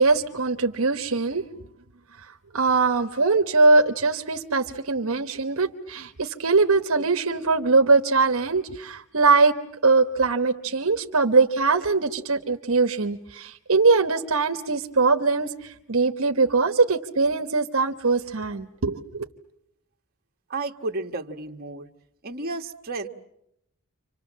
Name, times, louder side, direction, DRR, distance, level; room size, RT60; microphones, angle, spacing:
voice 1, 0.0-1.4 2.5-9.5 9.8-19.3, right 3 dB, 65° right, 7 dB, 1.2 m, -21 dB
voice 2, 20.5-21.9 22.2-23.1, right 2 dB, 45° right, 3 dB, 1.6 m, -32 dB
29.5 x 26.0 x 7.5 m, 0.79 s
head